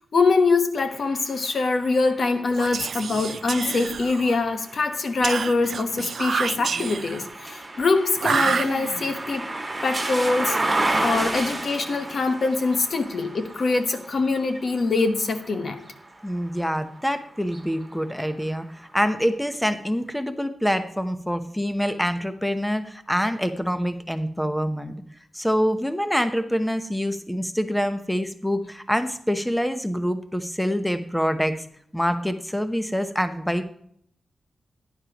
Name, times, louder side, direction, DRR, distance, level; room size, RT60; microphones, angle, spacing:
voice 1, 0.1-9.4 9.8-10.6 11.0-15.8, left 3 dB, 55° left, 7 dB, 1.3 m, -23 dB
sound 1, 0.9-16.8 17.4-18.6, right 2 dB, 15° right, 2.1 m, -33 dB
Whispering, 2.5-4.5 5.2-7.3 8.2-9.2, right 6 dB, 60° right, 0.4 m, -28 dB
voice 2, 16.2-24.9 25.3-31.6 31.9-33.6, equal, 5° left, 9 dB, 0.9 m, -25 dB
12.0 x 10.0 x 3.0 m, 0.67 s
wide cardioid pair, 115°, 0 cm